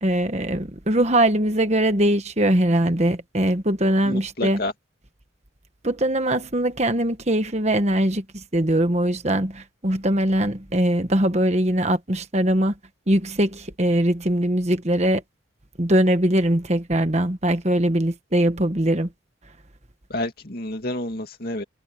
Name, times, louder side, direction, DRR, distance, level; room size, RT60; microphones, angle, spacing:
voice 1, 0.0-4.6 5.8-12.7 13.1-15.2 15.8-19.1, right 1 dB, 35° right, 1.4 m, -21 dB
voice 2, 4.1-4.7 20.1-21.6, left 1 dB, 50° left, 2.5 m, -29 dB
head